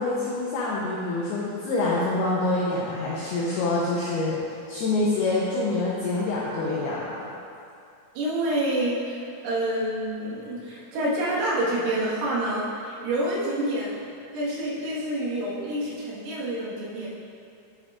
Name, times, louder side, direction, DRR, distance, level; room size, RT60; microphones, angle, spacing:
voice 1, 0.0-7.3, left 2 dB, 85° left, -5 dB, 2.2 m, -26 dB
voice 2, 8.2-14.0 14.3-17.1, right 1 dB, 85° right, -7 dB, 4.2 m, -28 dB
11.0 x 7.4 x 2.5 m, 2.5 s
omnidirectional pair, 5.7 m